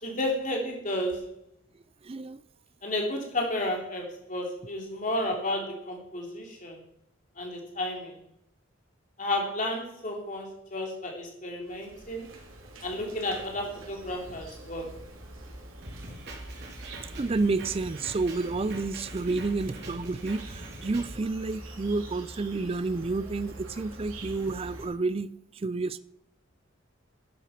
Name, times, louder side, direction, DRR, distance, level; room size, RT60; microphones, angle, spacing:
voice 1, 0.0-1.3 2.8-6.8 7.4-8.1 9.2-12.3 12.8-14.9, left 1 dB, 40° left, 0 dB, 3.2 m, -32 dB
voice 2, 2.0-2.4 17.1-26.0, right 3 dB, 30° right, 15 dB, 0.4 m, -30 dB
Insect, 11.6-24.9, right 1 dB, 85° right, 3.4 m, -45 dB
Drum kit, 15.8-21.1, right 1 dB, 55° right, 3.0 m, -43 dB
12.5 x 8.2 x 5.8 m, 0.75 s
head